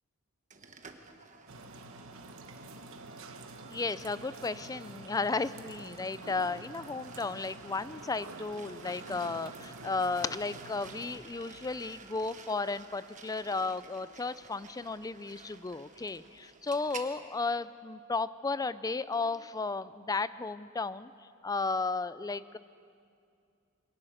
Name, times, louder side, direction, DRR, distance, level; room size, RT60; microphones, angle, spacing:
sound 1, 0.5-17.1, right 5 dB, 35° right, 1.2 m, -52 dB
sound 2, 1.5-11.2, right 2 dB, 65° right, 1.2 m, -48 dB
voice 1, 3.6-21.1 21.4-22.6, left 3 dB, 15° left, 16 dB, 0.4 m, -34 dB
22.0 x 18.5 x 6.5 m, 2.4 s
head